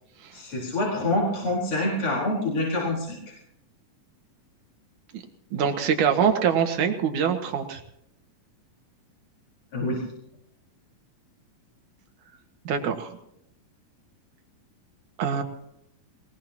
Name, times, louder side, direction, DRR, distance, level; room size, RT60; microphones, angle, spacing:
voice 1, 0.3-3.4 9.7-10.0, left 1 dB, 35° left, -3 dB, 5.1 m, -26 dB
voice 2, 5.5-7.8 12.6-13.1 15.2-15.4, right 7 dB, 65° right, 5 dB, 3.1 m, -24 dB
21.5 x 21.0 x 2.9 m, 0.77 s
omnidirectional pair, 4.0 m